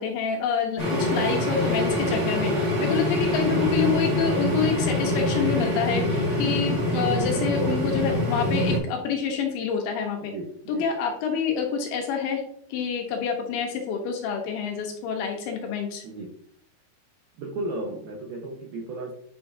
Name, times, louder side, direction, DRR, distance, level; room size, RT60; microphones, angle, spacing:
voice 1, 0.0-2.5 2.8-10.3 10.7-12.4 12.7-16.0, left 6 dB, 75° left, 2 dB, 3.1 m, -27 dB
sound 1, 0.8-8.8, left 1 dB, 25° right, 2.8 m, -25 dB
voice 2, 10.3-10.8 16.0-16.3 17.4-19.1, right 2 dB, 75° right, -2 dB, 2.2 m, -34 dB
10.0 x 6.3 x 2.7 m, 0.67 s
omnidirectional pair, 5.8 m